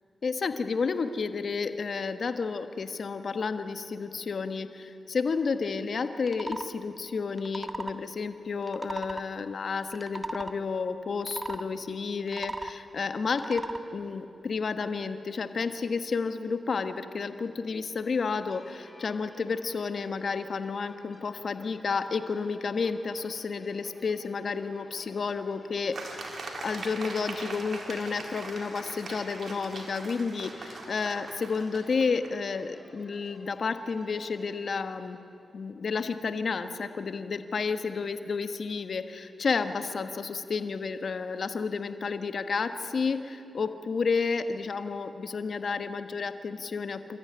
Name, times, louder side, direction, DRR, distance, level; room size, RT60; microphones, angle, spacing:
voice 1, 0.2-35.2 35.5-47.2, left 5 dB, 65° left, 9 dB, 1.4 m, -31 dB
sound 1, 6.2-6.7 7.3-8.0 8.6-9.3 9.9-10.6 11.2-11.6 12.2-12.8 13.3-13.8, right 1 dB, 20° right, 1.5 m, -37 dB
sound 2, 18.4-36.1, equal, ahead, 7.5 m, -56 dB
sound 3, 25.9-32.3, right 2 dB, 60° right, 4.0 m, -41 dB
27.5 x 14.0 x 9.8 m, 2.6 s
cardioid pair, 50°, 0 cm